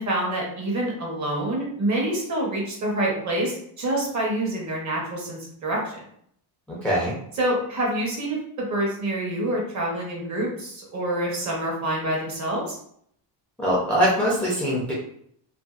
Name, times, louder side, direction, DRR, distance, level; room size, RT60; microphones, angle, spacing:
voice 1, 0.0-5.9 7.4-12.8, right 1 dB, 35° right, -2 dB, 0.9 m, -27 dB
voice 2, 6.7-7.2 13.6-14.9, equal, 5° left, -7 dB, 0.5 m, -22 dB
2.6 x 2.3 x 2.4 m, 0.67 s
cardioid pair, 135°, 49 cm